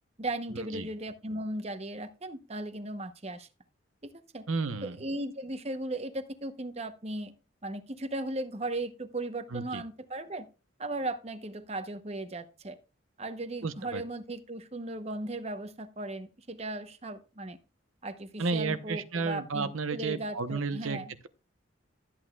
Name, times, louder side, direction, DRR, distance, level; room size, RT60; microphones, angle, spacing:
voice 1, 0.2-3.5 4.0-4.4 4.8-7.3 7.6-10.5 10.8-12.8 13.2-17.6 18.0-21.1, right 1 dB, 30° right, 0.8 m, -37 dB
voice 2, 4.5-5.0 9.5-9.8 13.6-14.0 18.4-21.0, right 4 dB, 90° right, 0.9 m, -32 dB
12.5 x 8.8 x 2.3 m
head